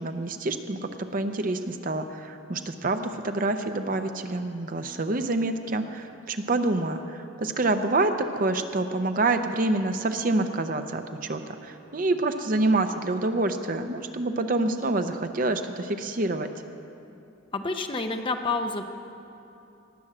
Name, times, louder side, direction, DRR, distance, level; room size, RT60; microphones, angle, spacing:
voice 1, 0.0-16.5, right 2 dB, 40° right, 8 dB, 0.6 m, -27 dB
voice 2, 17.5-18.8, left 3 dB, 25° left, 5 dB, 0.7 m, -28 dB
18.5 x 6.2 x 7.7 m, 2.7 s
head